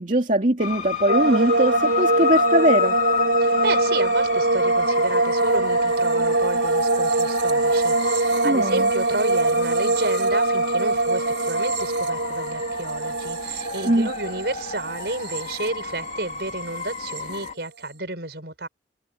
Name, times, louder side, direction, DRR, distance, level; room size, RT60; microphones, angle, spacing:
voice 1, 0.0-2.9 8.4-8.9 13.8-14.1, right 1 dB, 45° right, 2.4 m, -21 dB
sound 1, 0.6-17.5, left 6 dB, 40° left, 3.0 m, -31 dB
sound 2, 1.1-16.3 16.6-17.2, right 2 dB, 85° right, 4.6 m, -23 dB
voice 2, 3.4-18.7, right 2 dB, 65° right, 5.3 m, -31 dB
head